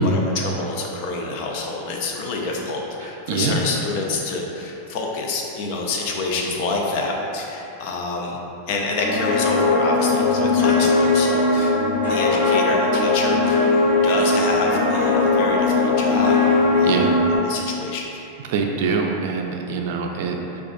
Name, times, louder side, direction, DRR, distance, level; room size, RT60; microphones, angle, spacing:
voice 1, 0.0-8.4 8.7-11.8 12.1-13.7 14.0-18.2, left 3 dB, 55° left, -1 dB, 0.6 m, -27 dB
voice 2, 3.3-3.6 16.8-17.1 18.5-20.6, right 4 dB, 65° right, 2 dB, 0.3 m, -24 dB
sound 1, 9.0-17.4, left 3 dB, 90° left, 1.0 m, -19 dB
4.9 x 2.3 x 2.5 m, 2.8 s
supercardioid pair, 130°, 0 cm